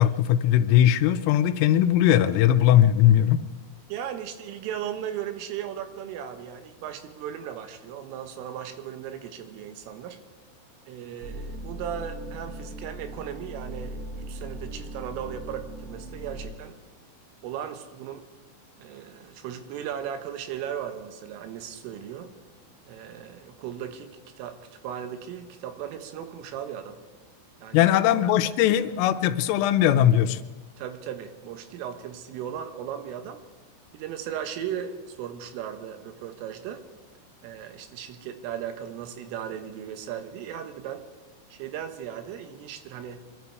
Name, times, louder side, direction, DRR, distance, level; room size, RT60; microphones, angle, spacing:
voice 1, 0.0-3.4 27.7-30.4, left 11 dB, 90° left, 12 dB, 3.4 m, -20 dB
voice 2, 3.9-10.2 10.9-16.8 17.4-18.3 18.8-22.3 22.9-24.6 24.8-27.0 27.6-27.9 30.8-33.4 33.9-36.9 37.4-41.1 41.5-43.3, right 9 dB, 80° right, 8 dB, 3.8 m, -37 dB
sound 1, 11.2-16.5, right 1 dB, 65° right, 3.8 m, -39 dB
24.5 x 12.5 x 4.7 m, 1.2 s
omnidirectional pair, 5.7 m